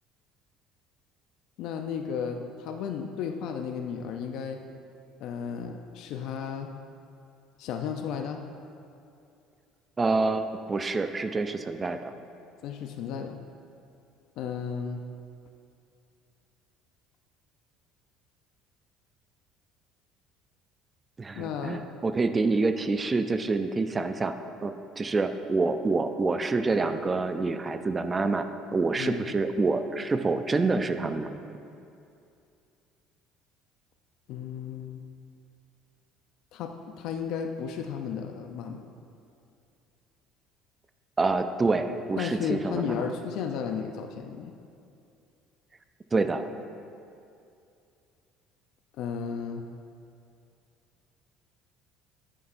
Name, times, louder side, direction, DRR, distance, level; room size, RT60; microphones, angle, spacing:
voice 1, 1.6-4.6 5.2-6.7 7.6-8.4 12.6-13.4 14.4-15.0 21.3-21.8 29.0-29.3 34.3-35.0 36.5-38.8 42.2-44.5 49.0-49.6, left 7 dB, 65° left, 4 dB, 0.5 m, -34 dB
voice 2, 10.0-12.1 21.2-24.4 24.6-31.4 41.2-43.1 46.1-46.4, right 3 dB, 20° right, 9 dB, 0.4 m, -27 dB
9.9 x 9.8 x 2.6 m, 2.6 s
cardioid pair, 130°, 0 cm